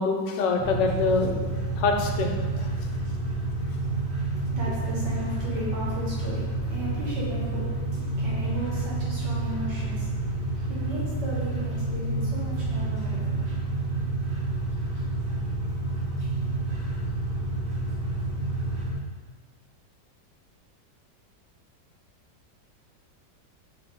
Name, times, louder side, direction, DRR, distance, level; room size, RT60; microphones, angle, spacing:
voice 1, 0.0-2.7, left 4 dB, 80° left, 3 dB, 1.2 m, -26 dB
sound 1, 0.6-18.9, right 2 dB, 90° right, 1.8 m, -29 dB
voice 2, 4.2-14.1, equal, 70° right, -6 dB, 1.8 m, -36 dB
4.6 x 3.2 x 3.4 m, 1.5 s
omnidirectional pair, 1.9 m